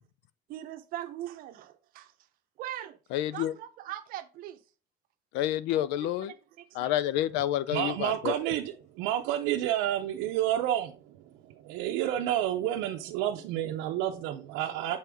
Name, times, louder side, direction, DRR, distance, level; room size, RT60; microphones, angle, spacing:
voice 1, 0.5-2.1 2.6-3.0 3.3-4.6 6.0-6.1 6.8-6.9, right 12 dB, 50° right, 0.7 m, -40 dB
voice 2, 3.1-3.5 5.3-6.3 6.7-8.3, left 12 dB, 65° left, 0.5 m, -29 dB
voice 3, 7.7-10.9 11.6-15.0, right 12 dB, 85° right, 0.6 m, -29 dB
7.6 x 4.2 x 3.5 m
cardioid pair, 175°, 19 cm